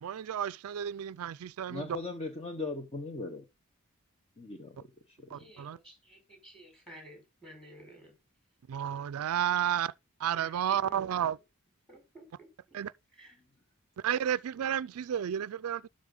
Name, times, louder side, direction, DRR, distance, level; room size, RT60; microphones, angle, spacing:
voice 1, 0.0-2.0 5.3-5.8 8.7-9.9 10.2-11.4 12.7-12.9 14.0-15.9, right 9 dB, 75° right, 0.4 m, -32 dB
voice 2, 1.7-3.4 4.4-5.5, left 3 dB, 30° left, 1.0 m, -39 dB
voice 3, 5.3-8.1 10.3-11.1 11.9-12.5 13.1-13.4, right 1 dB, 5° left, 5.0 m, -53 dB
12.0 x 5.0 x 3.8 m
head